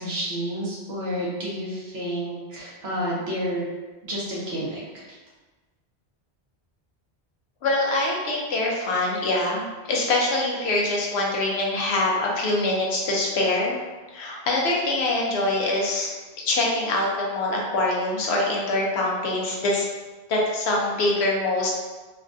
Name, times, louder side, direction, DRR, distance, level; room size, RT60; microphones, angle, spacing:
voice 1, 0.0-3.7 4.0-5.2, equal, 75° right, -6 dB, 1.1 m, -30 dB
voice 2, 7.6-13.8 14.1-16.1 16.4-19.9 20.3-21.7, left 2 dB, 80° left, -2 dB, 0.9 m, -24 dB
3.2 x 2.3 x 2.5 m, 1.2 s
omnidirectional pair, 1.1 m